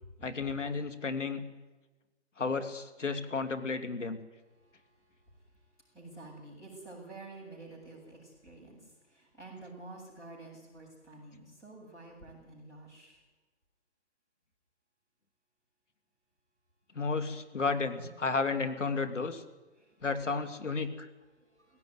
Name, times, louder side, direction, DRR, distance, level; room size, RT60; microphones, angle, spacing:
voice 1, 0.2-1.4 2.4-4.2 16.9-19.4 20.0-21.1, left 4 dB, 90° left, 8 dB, 3.0 m, -32 dB
voice 2, 5.9-8.8 9.2-13.2, right 2 dB, 10° left, -4 dB, 7.2 m, -49 dB
18.5 x 17.0 x 9.7 m, 1.1 s
hypercardioid pair, 160°, 36 cm